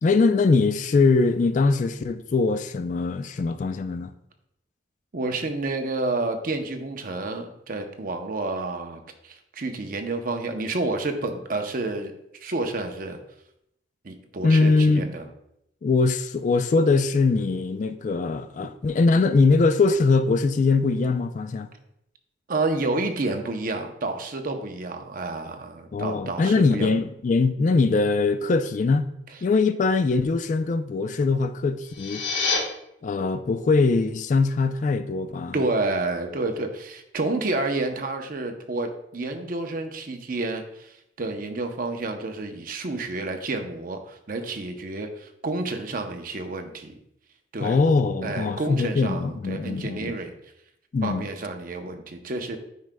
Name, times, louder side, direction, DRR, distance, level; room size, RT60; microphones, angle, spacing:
voice 1, 0.0-4.1 14.4-15.1 15.8-21.7 25.9-29.0 29.4-32.3 33.0-35.6 47.6-50.1 50.9-51.3, left 3 dB, 40° left, 0.3 m, -22 dB
voice 2, 5.1-12.1 12.4-13.2 14.0-15.2 18.6-18.7 22.5-26.9 35.5-46.9 47.5-47.8 48.2-50.3 51.0-52.6, right 2 dB, 50° right, 0.6 m, -29 dB
sound 1, 31.8-32.6, left 4 dB, 70° left, 1.1 m, -26 dB
9.3 x 5.0 x 2.2 m
head